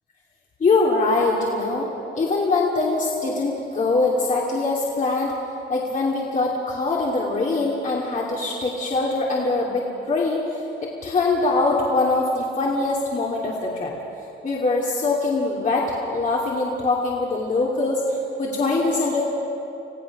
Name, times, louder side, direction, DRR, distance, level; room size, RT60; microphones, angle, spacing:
voice 1, 0.6-1.9 2.1-5.3 5.7-13.9 14.4-19.2, left 3 dB, 40° left, -4 dB, 2.8 m, -23 dB
27.0 x 15.5 x 6.2 m, 3.0 s
cardioid pair, 90°, 20 cm